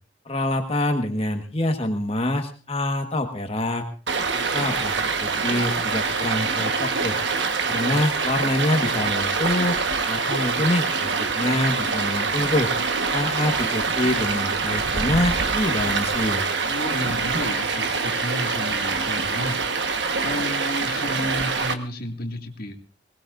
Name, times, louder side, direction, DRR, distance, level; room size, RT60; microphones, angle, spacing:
voice 1, 0.2-3.9 4.3-7.2 7.7-9.8 10.1-12.7 13.1-16.5, left 1 dB, 35° left, 4 dB, 1.5 m, -25 dB
Stream, 4.1-21.7, right 4 dB, 70° right, 1.3 m, -25 dB
voice 2, 16.7-19.8 20.2-22.7, left 1 dB, 55° left, 3 dB, 2.1 m, -32 dB
21.5 x 19.0 x 2.6 m, 0.35 s
head